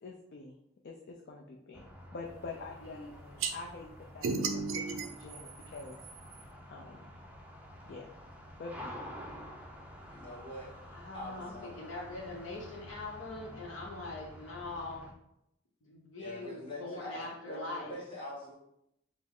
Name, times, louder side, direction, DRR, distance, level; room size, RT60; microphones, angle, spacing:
voice 1, 0.0-0.5 0.8-6.0 6.7-7.0 7.9-8.1 8.6-9.0, left 3 dB, 50° left, 0 dB, 0.4 m, -46 dB
sound 1, 1.7-15.1, equal, 5° right, 0.5 m, -49 dB
sound 2, 3.4-3.5 4.2-6.4, right 4 dB, 75° right, 0.4 m, -35 dB
voice 2, 10.1-10.7 11.1-11.7 16.2-17.2 17.5-18.5, left 1 dB, 25° left, -6 dB, 1.4 m, -43 dB
voice 3, 10.9-15.1 15.8-18.0, left 2 dB, 70° left, -1 dB, 0.8 m, -42 dB
5.3 x 2.0 x 3.6 m, 0.80 s
head